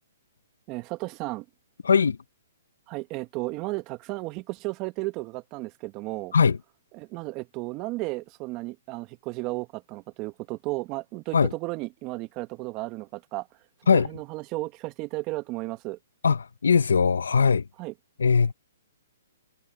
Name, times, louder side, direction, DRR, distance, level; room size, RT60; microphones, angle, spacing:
voice 1, 0.7-1.4 2.9-6.3 6.9-13.5 13.9-16.0 17.8-17.9, right 21 dB, 30° right, 1.3 m, -34 dB
voice 2, 1.8-2.2 6.3-6.6 11.3-11.5 13.9-14.1 16.2-17.7 18.2-18.5, left 5 dB, 85° left, 0.7 m, -20 dB
hypercardioid pair, 150°, 0 cm